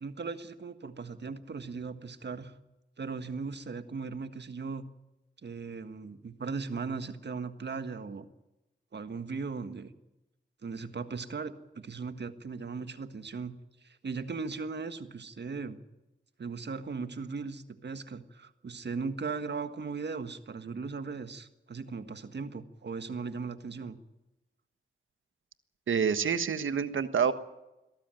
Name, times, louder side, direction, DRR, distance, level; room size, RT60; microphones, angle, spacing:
voice 1, 0.0-2.5 3.0-4.9 5.4-8.3 8.9-9.9 10.6-13.5 13.8-15.8 16.4-24.0, right 4 dB, 60° right, 10 dB, 1.6 m, -38 dB
voice 2, 25.9-27.3, right 7 dB, 80° right, 11 dB, 1.4 m, -27 dB
22.5 x 13.5 x 9.1 m, 0.97 s
cardioid pair, 50°, 20 cm